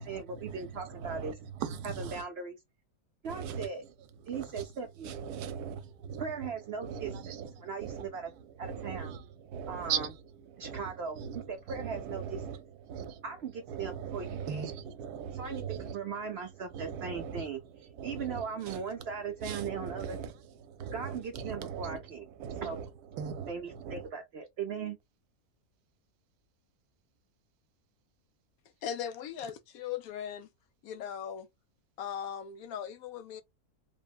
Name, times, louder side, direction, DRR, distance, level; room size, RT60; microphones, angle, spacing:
voice 1, 0.0-1.4 1.8-2.6 3.2-3.8 4.3-5.1 6.2-7.4 7.6-8.3 8.6-9.1 9.7-10.1 10.6-12.4 13.2-14.7 15.3-17.6 18.0-20.2 20.9-22.3 22.6-22.8 23.5-25.0, right 5 dB, 65° right, 0.6 m, -38 dB
voice 2, 1.0-1.3 1.6-2.2 3.3-3.7 4.3-4.5 5.0-6.2 6.8-7.5 7.8-8.1 8.6-9.2 9.5-10.1 10.6-10.8 11.2-12.6 12.9-13.2 13.7-16.0 16.7-17.4 18.0-18.4 18.7-18.8 19.4-20.3 20.7-22.0 22.4-22.8 23.2-23.5 23.8-24.0, right 7 dB, 80° right, 1.1 m, -38 dB
voice 3, 28.8-30.5 30.8-31.5 32.0-33.4, left 9 dB, 75° left, 1.0 m, -38 dB
3.4 x 2.0 x 2.3 m
omnidirectional pair, 1.6 m